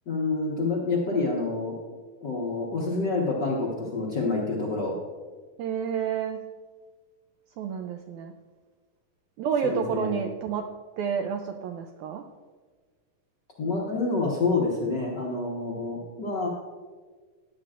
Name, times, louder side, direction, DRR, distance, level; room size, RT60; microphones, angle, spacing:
voice 1, 0.1-1.7 2.2-5.0 9.6-10.2 13.6-16.5, left 3 dB, 80° left, -4 dB, 0.9 m, -27 dB
voice 2, 5.6-6.4 7.6-8.3 9.4-10.7 11.0-12.2, right 7 dB, 85° right, 5 dB, 1.7 m, -29 dB
14.0 x 11.0 x 2.5 m, 1.4 s
omnidirectional pair, 4.0 m